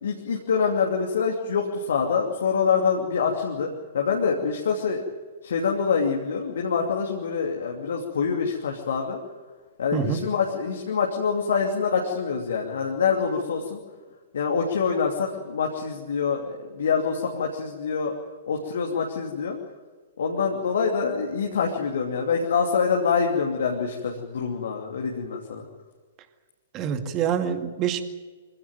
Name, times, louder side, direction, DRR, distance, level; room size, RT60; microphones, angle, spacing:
voice 1, 0.0-3.7 3.9-5.0 5.4-9.2 9.8-13.8 14.3-18.1 18.5-19.6 20.2-25.6, left 6 dB, 60° left, 1 dB, 2.7 m, -25 dB
voice 2, 26.7-28.0, right 8 dB, 25° right, 8 dB, 2.2 m, -26 dB
25.0 x 16.5 x 9.2 m, 1.4 s
figure-of-eight pair, 115°, 0 cm